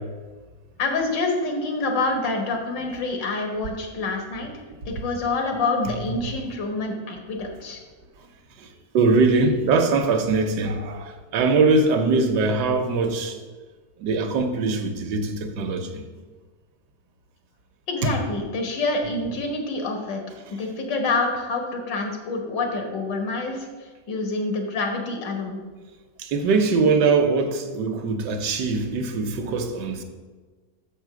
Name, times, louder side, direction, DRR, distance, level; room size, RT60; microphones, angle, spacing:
voice 1, 0.8-4.5 4.9-7.8 17.9-20.2 20.5-23.7 24.1-25.6, left 3 dB, 90° left, 1.9 m, -27 dB
voice 2, 8.9-13.4 14.0-16.0 18.0-18.1 26.2-30.0, right 3 dB, 75° right, 1.4 m, -22 dB
6.6 x 5.2 x 6.1 m
omnidirectional pair, 1.9 m